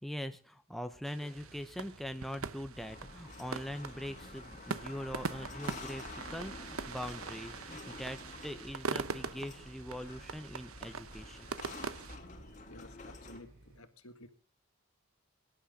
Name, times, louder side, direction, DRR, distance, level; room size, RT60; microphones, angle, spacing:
voice 1, 0.0-11.5, equal, ahead, 8 dB, 0.8 m, -42 dB
sound 1, 1.0-12.2, right 4 dB, 75° right, 0.9 m, -42 dB
sound 2, 1.3-13.8, right 1 dB, 60° right, 7.4 m, -60 dB
sound 3, 2.7-13.4, left 2 dB, 35° left, 2.8 m, -49 dB
voice 2, 12.6-14.3, left 1 dB, 80° left, 8 dB, 2.0 m, -53 dB
22.5 x 11.5 x 3.8 m, 0.36 s
head